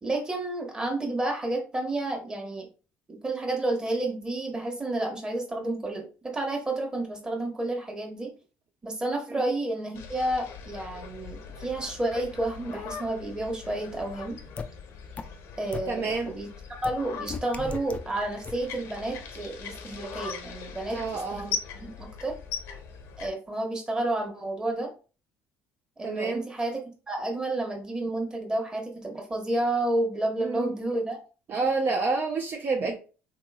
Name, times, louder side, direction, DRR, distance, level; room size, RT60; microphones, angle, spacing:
voice 1, 0.0-2.7 3.1-8.3 8.8-14.4 15.6-16.5 16.8-21.0 21.3-21.5 21.8-22.3 23.2-24.9 26.0-26.8 27.1-31.2, right 2 dB, 15° right, 2 dB, 1.1 m, -30 dB
sound 1, 9.9-23.3, left 6 dB, 75° left, 0.7 m, -40 dB
sound 2, 14.6-14.7 15.2-15.3 15.7-15.8 16.8-16.9 17.3-18.0 18.4-18.5, left 5 dB, 30° left, 0.4 m, -34 dB
voice 2, 15.9-16.3 20.9-21.5 26.0-26.4 30.4-30.8 31.5-33.0, right 4 dB, 45° right, 2 dB, 0.5 m, -28 dB
3.7 x 3.0 x 2.3 m, 0.36 s
cardioid pair, 115°, 5 cm